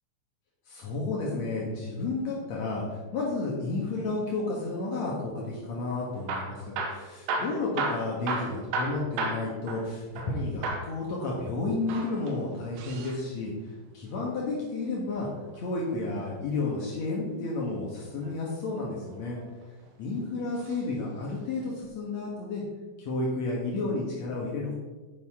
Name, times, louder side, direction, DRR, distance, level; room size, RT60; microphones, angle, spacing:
voice 1, 0.7-13.5 13.9-15.3 15.5-19.4 20.0-22.6 23.0-24.7, left 3 dB, 75° left, -4 dB, 1.6 m, -31 dB
Hammer / Drill, 6.1-10.4 10.6-11.0 11.8-13.2 14.9-16.2 17.9-18.3 19.1-19.9 20.6-20.8 21.1-21.2 21.8-21.9, right 3 dB, 90° right, 3.6 m, -34 dB
10.0 x 9.6 x 3.7 m, 1.3 s
omnidirectional pair, 5.5 m